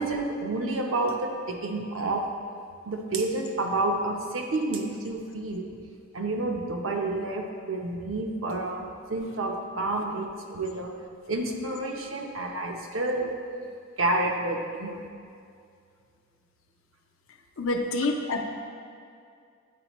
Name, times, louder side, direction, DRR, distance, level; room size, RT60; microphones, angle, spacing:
voice 1, 0.0-2.2 2.8-5.7 6.1-10.9 11.3-13.3 14.0-15.0, right 2 dB, 75° right, 1 dB, 0.8 m, -29 dB
voice 2, 17.6-18.4, left 2 dB, 75° left, 4 dB, 0.6 m, -27 dB
9.4 x 4.3 x 3.0 m, 2.3 s
head